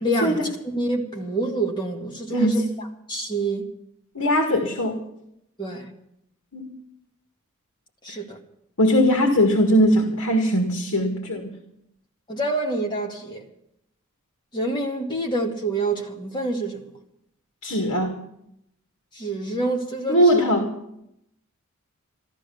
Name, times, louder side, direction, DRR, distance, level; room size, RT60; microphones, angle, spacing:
voice 1, 0.0-3.7 5.6-5.9 8.0-8.4 12.3-13.4 14.5-16.9 19.1-20.4, right 2 dB, 20° left, 1.9 m, -27 dB
voice 2, 2.3-2.6 4.2-5.0 6.5-6.7 8.1-8.2 8.8-11.5 17.6-18.2 20.1-20.7, equal, 90° left, 2.0 m, -20 dB
14.0 x 12.5 x 7.0 m
head